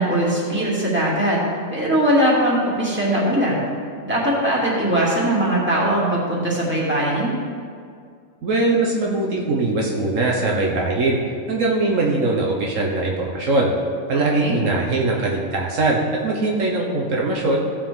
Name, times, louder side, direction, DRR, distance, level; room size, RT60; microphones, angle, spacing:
voice 1, 0.0-1.4 1.7-3.5 4.0-7.3 14.3-14.6, right 1 dB, 10° right, -6 dB, 2.5 m, -20 dB
voice 2, 8.4-11.2 11.5-13.7 14.1-17.6, right 2 dB, 70° right, -2 dB, 1.4 m, -21 dB
15.5 x 6.8 x 3.7 m, 2.2 s
omnidirectional pair, 1.4 m